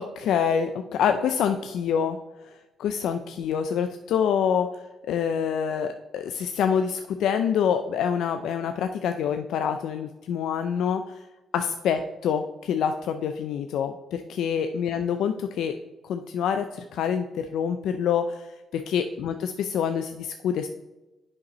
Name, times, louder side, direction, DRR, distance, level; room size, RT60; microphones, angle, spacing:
voice 1, 0.0-2.2 2.4-2.5 2.8-11.2 11.5-15.7 16.0-20.7, left 7 dB, 80° left, 7 dB, 0.4 m, -26 dB
8.2 x 5.2 x 3.0 m, 1.1 s
cardioid pair, 90°, 0 cm